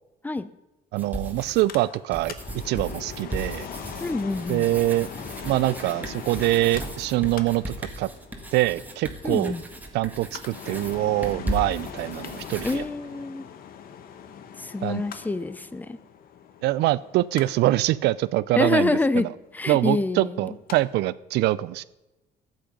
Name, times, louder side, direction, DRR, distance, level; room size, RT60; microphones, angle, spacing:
voice 1, 0.9-2.3 2.7-3.7 4.5-5.1 5.4-8.1 8.5-9.5 9.9-12.8 14.8-15.0 16.6-19.3 19.7-21.8, right 17 dB, 80° right, 19 dB, 0.5 m, -24 dB
sound 1, 1.0-1.8 2.1-12.8, right 1 dB, 10° right, 1.7 m, -36 dB
Mechanical fan, 1.4-20.8 21.1-21.2, left 8 dB, 60° left, 1.1 m, -41 dB
voice 2, 4.0-4.7 9.2-9.6 12.6-13.5 14.6-16.0 18.6-19.3 19.5-20.6, left 2 dB, 10° left, 15 dB, 0.6 m, -26 dB
13.0 x 7.7 x 5.2 m, 1.0 s
cardioid pair, 110°, 17 cm